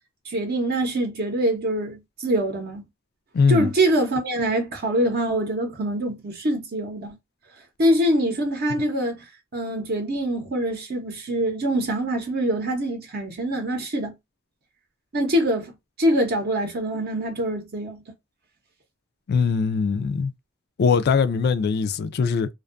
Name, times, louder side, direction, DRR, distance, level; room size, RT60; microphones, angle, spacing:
voice 1, 0.2-2.9 3.5-7.2 7.8-9.3 9.5-14.1 15.1-15.7 16.0-18.0, right 1 dB, 50° right, 0.6 m, -24 dB
voice 2, 3.3-3.7 19.3-20.3 20.8-22.5, left 5 dB, 50° left, 0.3 m, -21 dB
2.5 x 2.2 x 2.4 m
head